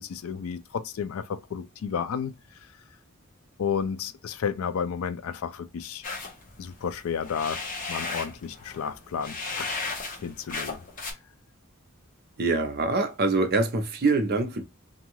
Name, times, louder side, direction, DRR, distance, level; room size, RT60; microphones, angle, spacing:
voice 1, 0.0-2.4 3.6-6.0 6.6-7.6 7.9-9.7 10.2-10.8, left 7 dB, 70° left, 0.4 m, -32 dB
sound 1, 6.0-11.1, left 3 dB, 40° left, 0.8 m, -35 dB
voice 2, 12.4-14.6, right 3 dB, 50° right, 0.6 m, -24 dB
2.6 x 2.3 x 3.0 m
head